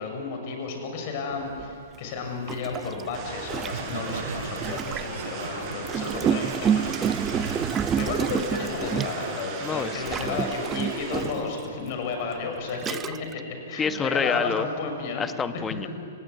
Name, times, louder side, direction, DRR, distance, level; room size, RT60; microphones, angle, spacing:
voice 1, 0.0-15.2, left 4 dB, 45° left, 4 dB, 6.6 m, -33 dB
Gurgling, 1.6-1.7 2.5-5.2 5.8-9.4 10.1-11.5 12.2-12.3 12.7-13.3, right 8 dB, 20° right, 0.6 m, -29 dB
sound 1, 3.1-11.3, right 3 dB, 35° right, 7.7 m, -37 dB
Laughter, 3.6-9.3 9.7-10.1, right 5 dB, 65° right, 1.8 m, -37 dB
voice 2, 9.6-10.4 13.8-14.7 15.2-15.9, left 5 dB, 15° left, 12 dB, 1.2 m, -28 dB
29.0 x 18.5 x 9.5 m, 2.4 s
figure-of-eight pair, 115°, 0 cm